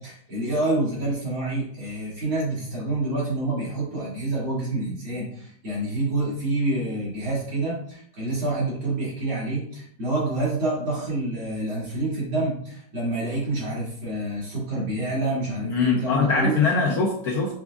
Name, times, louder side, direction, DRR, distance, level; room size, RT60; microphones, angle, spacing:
voice 1, 0.0-16.6 16.9-17.0, right 2 dB, 85° right, -7 dB, 3.0 m, -27 dB
voice 2, 15.6-17.6, left 4 dB, 70° left, 1 dB, 0.9 m, -22 dB
6.0 x 3.4 x 2.4 m, 0.65 s
omnidirectional pair, 2.2 m